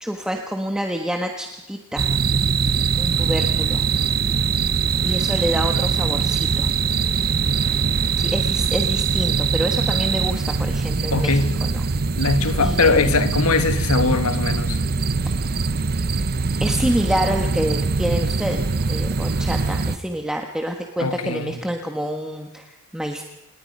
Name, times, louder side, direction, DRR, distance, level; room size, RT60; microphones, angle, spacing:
voice 1, 0.0-2.1 3.0-3.8 5.0-6.7 8.2-11.8 12.6-13.1 15.2-15.3 16.6-23.2, equal, 5° right, 1.4 m, -27 dB
sound 1, 2.0-20.0, right 5 dB, 45° right, 0.7 m, -22 dB
voice 2, 11.1-11.7 12.2-14.8 21.0-21.6, left 3 dB, 80° left, 1.5 m, -21 dB
28.0 x 19.5 x 5.4 m
head